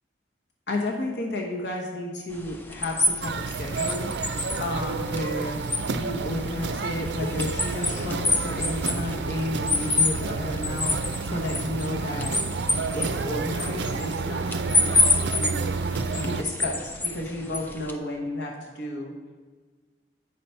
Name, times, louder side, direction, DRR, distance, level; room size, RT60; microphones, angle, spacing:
voice 1, 0.7-4.1 4.6-5.6 5.9-12.3 12.9-15.7 16.2-19.1, left 1 dB, 75° left, -1 dB, 1.0 m, -32 dB
sound 1, 2.3-17.9, left 2 dB, 10° left, 0.4 m, -29 dB
sound 2, 3.2-16.4, right 4 dB, 75° right, 0.4 m, -30 dB
9.1 x 4.4 x 5.5 m, 1.4 s
head